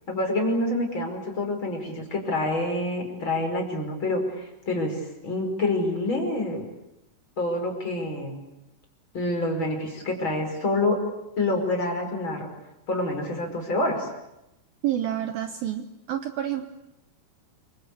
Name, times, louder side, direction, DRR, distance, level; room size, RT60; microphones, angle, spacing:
voice 1, 0.1-6.7 7.4-8.4 9.1-11.0 11.4-12.5 12.9-14.1, left 2 dB, 25° left, 3 dB, 5.6 m, -27 dB
voice 2, 14.8-16.7, right 11 dB, 70° right, 8 dB, 2.6 m, -29 dB
28.5 x 24.5 x 8.5 m, 0.89 s
omnidirectional pair, 5.0 m